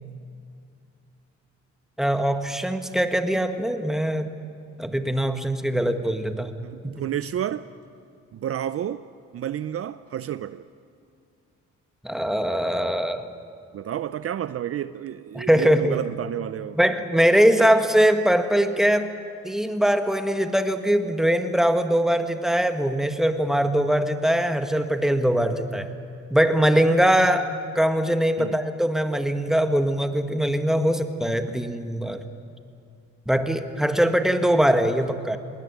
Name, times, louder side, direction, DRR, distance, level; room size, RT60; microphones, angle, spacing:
voice 1, 2.0-4.3 4.8-6.5 12.0-13.3 15.3-16.0 16.7-19.1 19.4-25.9 26.3-32.2 33.3-35.4, equal, ahead, 8 dB, 1.4 m, -22 dB
voice 2, 6.6-7.7 8.3-9.1 9.3-10.6 13.7-16.8 28.4-28.6, right 10 dB, 50° right, 14 dB, 0.5 m, -30 dB
20.5 x 17.5 x 9.5 m, 2.4 s
cardioid pair, 90°, 30 cm